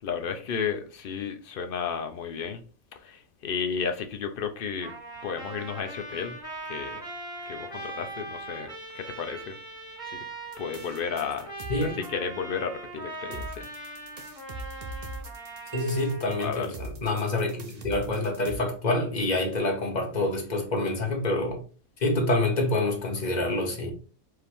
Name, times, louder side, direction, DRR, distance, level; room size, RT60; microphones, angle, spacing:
voice 1, 0.0-2.6 2.9-4.9 5.2-7.0 7.5-9.6 10.0-10.2 10.6-11.5 11.8-13.7 16.4-16.7, left 6 dB, 65° left, 0.5 m, -33 dB
Trumpet, 4.8-16.4, right 2 dB, 5° right, 1.7 m, -40 dB
sound 1, 10.5-12.1 13.3-18.6, right 2 dB, 40° right, 0.6 m, -41 dB
voice 2, 11.7-12.0 15.7-21.6 22.0-23.9, left 2 dB, 35° left, 1.0 m, -27 dB
sound 2, 15.7-17.7, equal, 70° right, 1.3 m, -39 dB
4.7 x 2.9 x 3.4 m
omnidirectional pair, 1.5 m